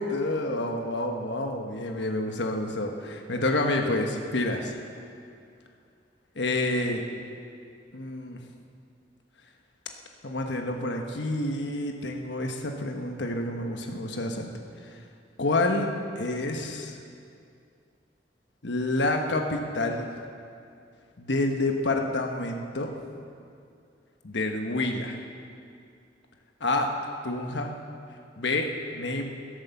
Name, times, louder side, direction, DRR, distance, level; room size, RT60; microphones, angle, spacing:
voice 1, 0.0-4.7 6.3-7.0 7.9-8.5 10.2-14.5 14.8-15.0 15.4-15.9 16.1-17.0 18.6-20.1 21.2-22.9 24.2-25.1 26.6-26.9 27.2-27.7 28.4-28.7 28.9-29.3, left 2 dB, 85° left, 3 dB, 1.3 m, -28 dB
16.0 x 8.1 x 7.1 m, 2.4 s
head